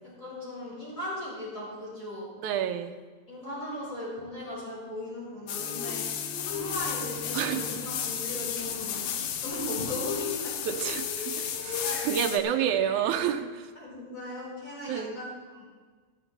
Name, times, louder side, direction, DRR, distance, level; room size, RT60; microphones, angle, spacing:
voice 1, 0.0-2.3 3.3-6.1 6.4-9.1 9.4-10.5 11.8-12.0 13.7-15.7, left 1 dB, 20° left, -8 dB, 4.4 m, -37 dB
voice 2, 2.4-2.9 7.3-7.6 10.6-13.7 14.9-15.2, right 9 dB, 75° right, 6 dB, 1.9 m, -29 dB
Bowed string instrument, 5.3-9.4, equal, 50° left, 2.2 m, -47 dB
sound 1, 5.5-12.4, left 9 dB, 90° left, 2.6 m, -33 dB
sound 2, 6.5-13.3, right 2 dB, 50° right, 5.4 m, -48 dB
13.5 x 12.0 x 4.1 m, 1.5 s
omnidirectional pair, 4.0 m